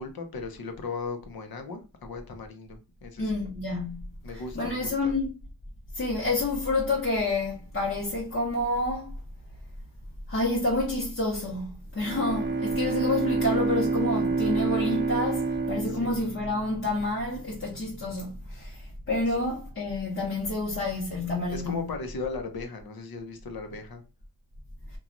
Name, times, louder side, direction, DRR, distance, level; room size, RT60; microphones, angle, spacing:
voice 1, 0.0-3.3 4.2-5.1 15.9-16.1 19.3-19.4 21.5-24.0, left 4 dB, 85° left, 0.7 m, -37 dB
voice 2, 3.2-4.0 4.3-5.3 5.9-9.1 10.3-21.9, left 2 dB, 35° left, 0.8 m, -29 dB
Bowed string instrument, 12.0-17.2, right 4 dB, 30° right, 0.5 m, -28 dB
2.9 x 2.3 x 2.4 m
wide cardioid pair, 95°, 35 cm